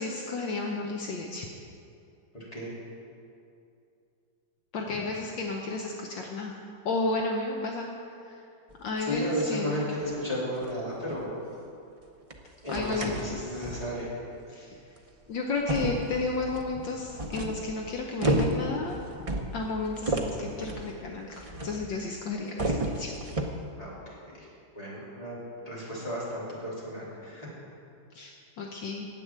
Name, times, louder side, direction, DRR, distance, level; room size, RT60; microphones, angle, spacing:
voice 1, 0.0-1.5 4.7-6.6 6.8-7.9 8.3-8.4 8.8-9.9 12.7-13.7 14.5-14.8 15.3-18.9 19.5-23.2 28.1-29.1, left 3 dB, 70° left, 1 dB, 1.5 m, -32 dB
voice 2, 2.3-2.7 9.0-11.3 12.6-14.1 23.8-23.9 24.4-24.5 24.7-25.4 25.6-27.5, equal, 20° left, -7 dB, 3.4 m, -33 dB
sound 1, 8.7-9.5 10.0-10.1 10.5-10.7 11.1-11.2 12.3-12.4 12.7-14.0 15.0-15.1 15.5-22.1 22.3-23.7, right 1 dB, 55° right, 0.3 m, -32 dB
10.0 x 7.8 x 8.7 m, 2.6 s
omnidirectional pair, 2.1 m